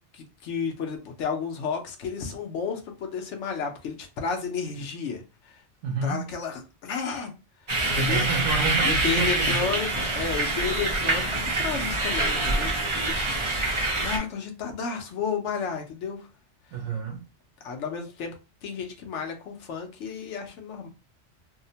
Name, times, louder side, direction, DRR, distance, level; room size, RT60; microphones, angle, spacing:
voice 1, 0.1-5.6 6.0-7.3 7.8-8.2 8.8-16.3 17.6-18.3 18.6-20.9, left 6 dB, 80° left, 1.0 m, -32 dB
voice 2, 5.8-6.2 7.9-10.0 16.7-17.2, right 4 dB, 85° right, 0.9 m, -29 dB
sound 1, 7.7-14.2, right 2 dB, 40° right, 0.4 m, -25 dB
2.8 x 2.0 x 2.7 m
omnidirectional pair, 1.2 m